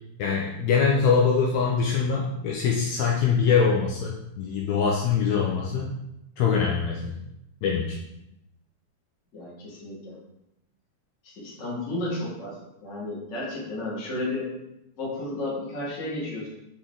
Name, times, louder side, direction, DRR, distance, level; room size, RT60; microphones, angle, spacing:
voice 1, 0.2-5.9 6.4-7.2 7.6-8.0, left 6 dB, 80° left, -1 dB, 1.8 m, -23 dB
voice 2, 9.3-10.1 11.3-12.5 12.8-14.5 15.0-16.5, left 2 dB, 30° left, -5 dB, 1.5 m, -32 dB
6.6 x 3.9 x 3.7 m, 0.85 s
omnidirectional pair, 3.6 m